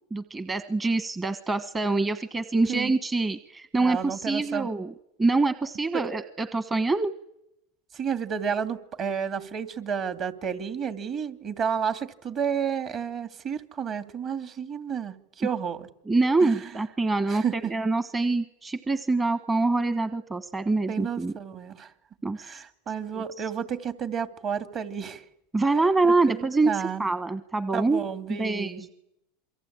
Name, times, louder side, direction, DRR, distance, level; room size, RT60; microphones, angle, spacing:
voice 1, 0.1-4.9 5.2-7.1 16.1-21.3 22.2-22.6 23.1-23.2 25.5-28.0 28.3-28.9, right 3 dB, 20° right, 11 dB, 1.3 m, -25 dB
voice 2, 3.8-4.7 7.9-15.9 16.4-16.7 17.3-17.7 20.9-21.9 22.4-25.2 26.0-27.0 27.7-28.9, right 7 dB, 40° right, 9 dB, 2.6 m, -31 dB
27.5 x 23.5 x 8.8 m, 0.82 s
hypercardioid pair, 105°, 0 cm